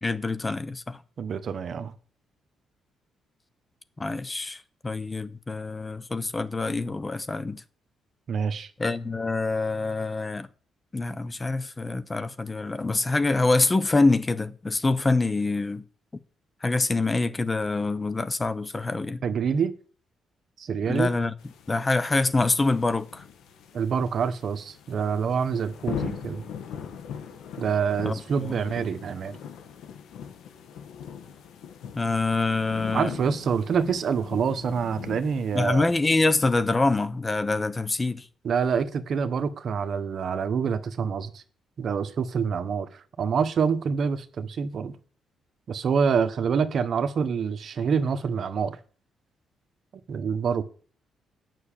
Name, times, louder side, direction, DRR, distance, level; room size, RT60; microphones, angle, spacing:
voice 1, 0.0-1.0 4.0-7.6 8.8-10.5 10.9-15.8 16.6-19.2 20.9-21.3 21.7-23.2 28.0-28.5 31.9-33.1 35.5-38.3, left 3 dB, 20° left, 1.0 m, -25 dB
voice 2, 1.2-1.9 8.3-8.7 19.2-19.7 20.6-21.1 23.7-26.4 27.6-29.4 32.9-35.9 38.4-41.4 41.8-45.0 45.7-48.8 50.1-50.6, right 6 dB, 55° right, 1.2 m, -26 dB
sound 1, 21.4-36.0, left 8 dB, 85° left, 1.7 m, -41 dB
9.5 x 6.1 x 8.6 m
cardioid pair, 90°, 0 cm